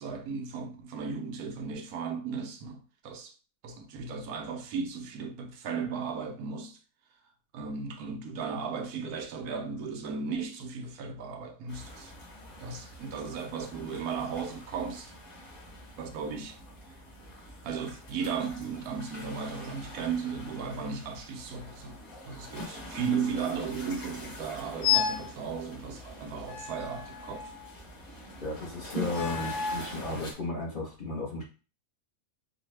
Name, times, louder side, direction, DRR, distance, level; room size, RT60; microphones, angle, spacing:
voice 1, 0.0-3.4 3.6-6.8 7.5-12.1 12.6-15.1 16.0-16.6 17.6-27.5 30.1-30.3, right 5 dB, 90° right, 1.2 m, -36 dB
sound 1, 11.7-30.3, left 1 dB, 65° left, 2.3 m, -45 dB
sound 2, 24.8-25.3 26.5-27.7 29.1-29.9, left 8 dB, 90° left, 1.1 m, -31 dB
voice 2, 28.4-31.4, left 2 dB, 40° left, 0.9 m, -34 dB
4.7 x 2.1 x 3.2 m
omnidirectional pair, 1.6 m